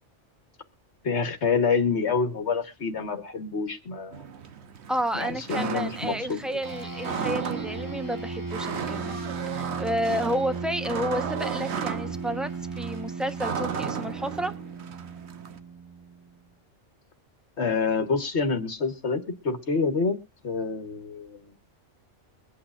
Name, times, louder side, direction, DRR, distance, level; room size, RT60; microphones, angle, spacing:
voice 1, 1.0-4.2 5.1-6.6 17.6-20.2 20.4-21.4, left 4 dB, 65° left, 1.6 m, -27 dB
sound 1, 4.1-15.6, right 7 dB, 65° right, 1.2 m, -35 dB
voice 2, 4.9-9.2 9.5-14.5, equal, ahead, 0.9 m, -31 dB
sound 2, 6.6-16.4, right 4 dB, 15° right, 1.2 m, -36 dB
23.0 x 8.7 x 2.5 m
omnidirectional pair, 1.2 m